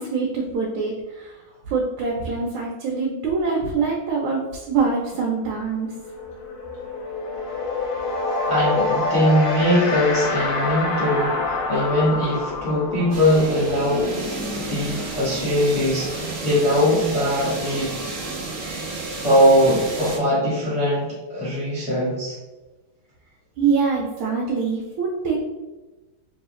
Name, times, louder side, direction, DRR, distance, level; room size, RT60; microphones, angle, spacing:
voice 1, 0.0-1.3 1.7-4.4 4.7-5.9 23.6-25.4, right 5 dB, 75° right, -1 dB, 1.4 m, -24 dB
sound 1, 5.3-5.4 5.7-16.3, left 3 dB, 65° left, 1.2 m, -27 dB
voice 2, 8.4-14.1 14.5-17.9 19.2-22.4, equal, 20° left, -10 dB, 0.8 m, -21 dB
sound 2, 13.1-20.2, right 3 dB, 55° right, 0.9 m, -31 dB
3.8 x 3.0 x 3.0 m, 1.2 s
omnidirectional pair, 2.4 m